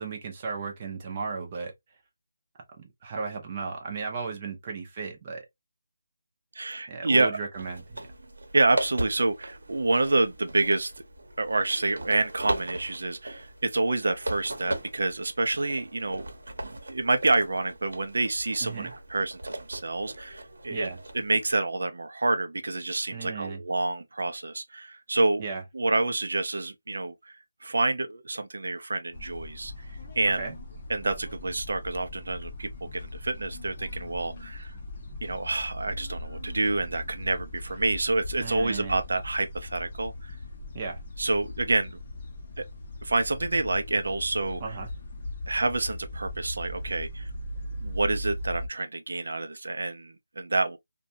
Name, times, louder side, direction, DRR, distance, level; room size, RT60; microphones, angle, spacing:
voice 1, 0.0-1.7 2.8-5.4 6.9-8.0 18.6-18.9 20.7-21.0 23.1-23.6 25.4-25.6 30.4-30.5 38.4-39.0 40.7-41.0 44.6-44.9, right 5 dB, 20° right, 0.5 m, -35 dB
voice 2, 6.5-7.4 8.5-10.9 11.4-16.3 16.6-25.5 25.7-29.9 30.2-30.5 30.9-34.7 35.2-40.4 41.2-41.9 42.6-42.7 43.0-44.6 45.5-47.3 47.8-50.8, right 2 dB, 70° right, 0.4 m, -28 dB
sound 1, 7.5-21.6, right 1 dB, 90° right, 0.8 m, -38 dB
sound 2, 29.1-48.7, left 1 dB, 25° left, 0.6 m, -39 dB
2.6 x 2.2 x 2.7 m
figure-of-eight pair, 175°, 0 cm